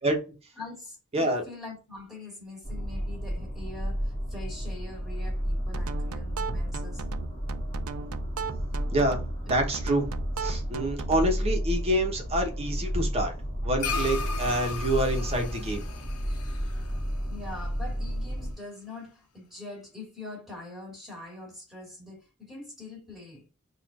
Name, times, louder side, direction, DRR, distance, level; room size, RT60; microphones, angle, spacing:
voice 1, 0.6-7.0 17.3-23.4, left 2 dB, ahead, 2.3 m, -43 dB
voice 2, 1.1-1.4 8.9-10.1 10.4-13.3 13.6-15.8, right 1 dB, 30° right, 1.1 m, -27 dB
sound 1, 2.6-18.5, equal, 20° left, 1.7 m, -32 dB
sound 2, 5.7-11.4, right 5 dB, 80° right, 0.5 m, -37 dB
sound 3, 13.8-18.4, left 5 dB, 75° left, 0.8 m, -37 dB
4.2 x 2.6 x 4.8 m
head